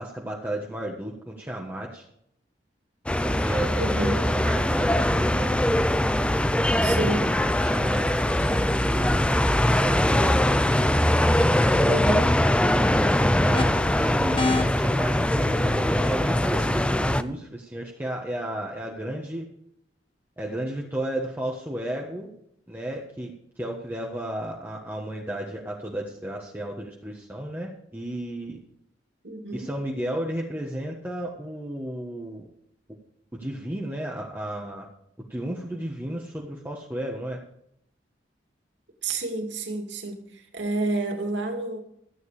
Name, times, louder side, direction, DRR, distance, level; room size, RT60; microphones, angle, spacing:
voice 1, 0.0-2.0 3.2-5.6 6.7-9.4 9.8-10.5 11.6-12.1 12.7-19.4 20.4-22.3 22.7-23.3 23.6-28.6 29.5-32.4 33.3-34.9 35.3-37.4, right 1 dB, 10° right, 1.4 m, -33 dB
sound 1, 3.1-17.2, left 1 dB, 5° left, 0.5 m, -22 dB
voice 2, 3.8-4.3 6.8-7.3 11.9-12.4 29.2-29.7 39.0-41.8, right 2 dB, 75° right, 2.5 m, -29 dB
sound 2, 7.5-15.0, left 3 dB, 30° left, 1.4 m, -36 dB
14.0 x 9.2 x 4.9 m
head